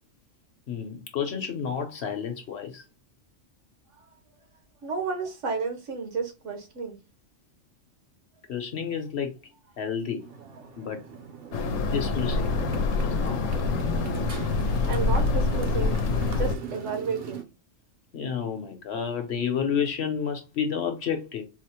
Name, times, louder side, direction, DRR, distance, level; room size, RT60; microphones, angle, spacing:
voice 1, 0.7-2.8 8.5-9.3 9.8-10.3 10.8-11.0 11.9-12.5 13.0-13.5 18.1-21.4, left 7 dB, 60° left, 0.9 m, -30 dB
voice 2, 4.8-7.0 14.9-16.0 16.4-17.4, right 4 dB, 70° right, 1.2 m, -31 dB
Motorcycle, 10.2-17.4, right 7 dB, 55° right, 0.8 m, -39 dB
sound 1, 11.5-16.6, left 4 dB, 85° left, 0.9 m, -26 dB
4.2 x 2.0 x 2.8 m
omnidirectional pair, 1.3 m